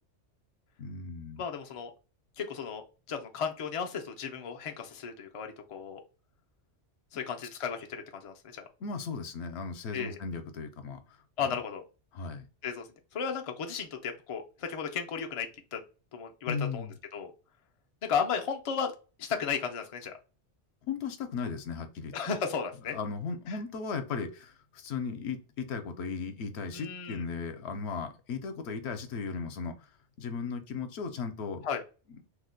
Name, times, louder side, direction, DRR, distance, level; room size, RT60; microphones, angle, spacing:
voice 1, 0.8-1.4 8.8-11.2 11.4-11.6 12.1-12.5 16.5-16.9 20.9-22.1 22.9-29.9 30.2-31.7 32.1-32.2, left 5 dB, 70° left, 8 dB, 0.8 m, -36 dB
voice 2, 1.4-1.9 2.4-6.0 7.1-8.6 9.9-10.2 11.4-11.8 12.6-12.9 13.1-15.8 16.1-16.9 17.1-17.3 18.0-18.9 19.2-20.1 22.1-22.9 23.5-23.6 26.7-27.2 31.6-31.8, left 6 dB, 55° left, 4 dB, 0.3 m, -34 dB
2.7 x 2.1 x 3.8 m, 0.33 s
omnidirectional pair, 1.2 m